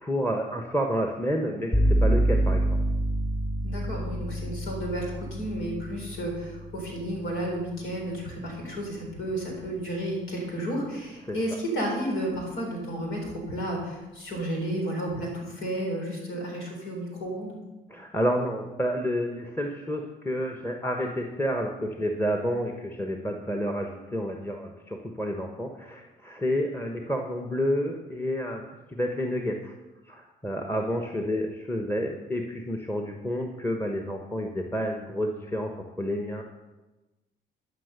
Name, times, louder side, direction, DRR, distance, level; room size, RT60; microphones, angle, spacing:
voice 1, 0.0-2.8 11.2-11.4 17.9-28.6 28.9-29.7 30.1-35.7 36.0-36.4, equal, 10° left, 3 dB, 1.2 m, -29 dB
sound 1, 1.7-9.4, right 1 dB, 30° left, 2.4 m, -28 dB
voice 2, 3.6-17.6, right 1 dB, 80° left, 0 dB, 4.0 m, -32 dB
12.0 x 5.9 x 6.7 m, 1.1 s
supercardioid pair, 65°, 20 cm